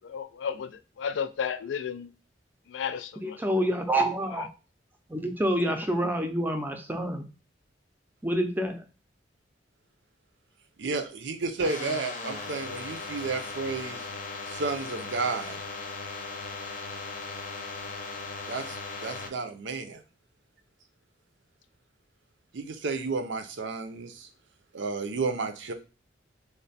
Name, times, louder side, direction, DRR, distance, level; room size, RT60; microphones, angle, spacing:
voice 1, 0.0-2.1 2.7-3.4 4.3-4.5, left 7 dB, 80° left, 0.4 m, -33 dB
voice 2, 3.2-4.5 5.1-7.2 8.2-8.8, right 1 dB, 10° right, 0.5 m, -27 dB
voice 3, 10.8-14.0 14.5-15.6 18.5-20.0 22.5-24.3 24.7-25.7, right 4 dB, 75° right, 0.5 m, -32 dB
sound 1, 11.6-19.3, left 3 dB, 45° left, 0.6 m, -38 dB
3.3 x 2.1 x 4.0 m
head